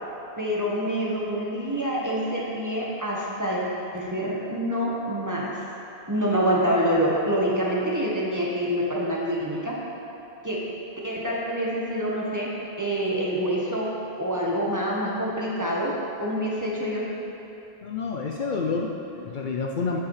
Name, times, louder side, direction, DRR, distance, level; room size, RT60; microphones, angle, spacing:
voice 1, 0.4-3.6 3.9-5.5 6.1-9.8 10.4-10.6 11.0-12.5 12.8-13.9 14.2-17.1, equal, 20° right, -5 dB, 1.5 m, -26 dB
voice 2, 17.8-20.0, left 4 dB, 55° left, 0 dB, 0.7 m, -29 dB
9.1 x 8.3 x 4.9 m, 3.0 s
omnidirectional pair, 1.0 m